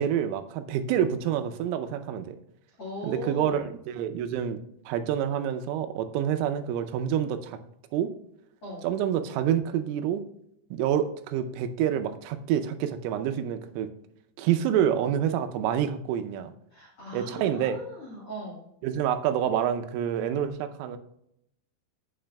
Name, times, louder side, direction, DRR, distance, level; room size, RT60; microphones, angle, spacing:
voice 1, 0.0-2.4 3.0-4.6 4.9-7.6 7.9-8.1 8.8-10.2 10.7-13.9 14.4-16.5 17.1-17.8 18.8-21.0, right 9 dB, 90° right, 7 dB, 3.3 m, -27 dB
voice 2, 2.8-3.6 8.6-8.9 16.7-18.7, equal, 45° left, -6 dB, 2.0 m, -39 dB
15.0 x 6.0 x 2.3 m, 0.77 s
omnidirectional pair, 5.6 m